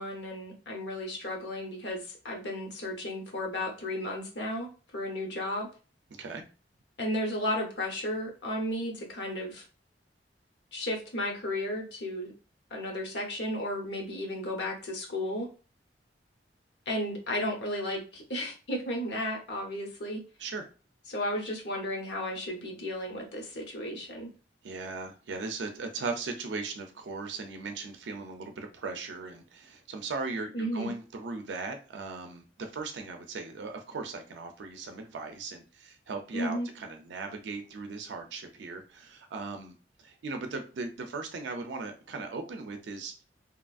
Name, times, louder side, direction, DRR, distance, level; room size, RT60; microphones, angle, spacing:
voice 1, 0.0-5.7 7.0-9.6 10.7-12.3 12.7-15.5 16.9-20.2 21.1-24.3 30.5-30.9 36.3-36.7, left 1 dB, 70° left, 1 dB, 0.8 m, -34 dB
voice 2, 6.1-6.4 20.4-20.7 24.6-43.2, right 3 dB, 80° right, 5 dB, 0.4 m, -38 dB
2.8 x 2.4 x 2.3 m, 0.35 s
head